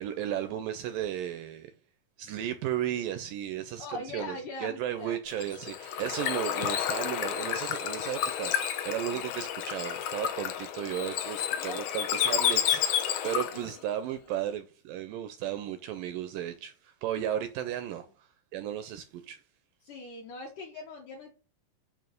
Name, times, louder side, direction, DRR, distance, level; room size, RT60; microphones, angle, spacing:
voice 1, 0.0-1.7 2.2-4.4 4.6-19.4, right 11 dB, 85° right, 2.0 m, -35 dB
voice 2, 3.8-5.2 9.1-9.3 11.6-11.8 13.5-13.7 19.8-21.3, left 3 dB, 65° left, 2.4 m, -41 dB
Bird / Water, 5.3-13.7, left 9 dB, 80° left, 1.7 m, -30 dB
9.0 x 3.1 x 6.5 m
omnidirectional pair, 4.4 m